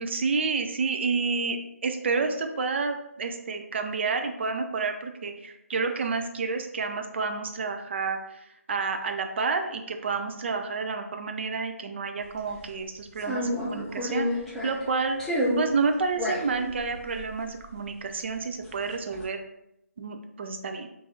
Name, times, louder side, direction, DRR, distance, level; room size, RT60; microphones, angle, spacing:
voice 1, 0.0-1.6 1.8-14.3 14.6-15.2 15.6-19.4 20.0-20.9, right 4 dB, 45° right, 5 dB, 0.5 m, -29 dB
sound 1, 12.3-12.7 13.2-14.9 15.2-15.7 16.1-18.4 18.6-19.2, left 1 dB, 5° left, 0.5 m, -30 dB
3.9 x 2.7 x 3.8 m, 0.83 s
figure-of-eight pair, 150°, 8 cm